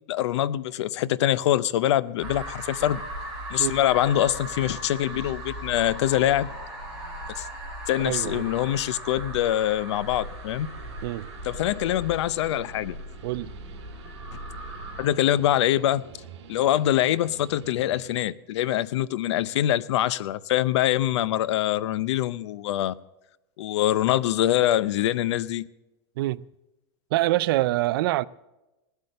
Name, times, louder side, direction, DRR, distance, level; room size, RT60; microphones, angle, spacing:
voice 1, 0.1-3.0 3.5-6.5 7.3-7.5 7.9-10.7 11.4-13.0 15.0-16.0 16.5-22.9 23.6-25.7, left 12 dB, 75° left, 0.6 m, -24 dB
sound 1, 2.2-15.0, right 1 dB, 5° right, 5.0 m, -38 dB
voice 2, 8.0-8.5 11.0-11.3 13.2-13.5 26.2-26.4 27.1-28.3, right 17 dB, 50° right, 0.4 m, -25 dB
Guitar, 9.6-18.3, right 7 dB, 75° right, 2.1 m, -47 dB
18.5 x 8.2 x 6.6 m
supercardioid pair, 175°, 15 cm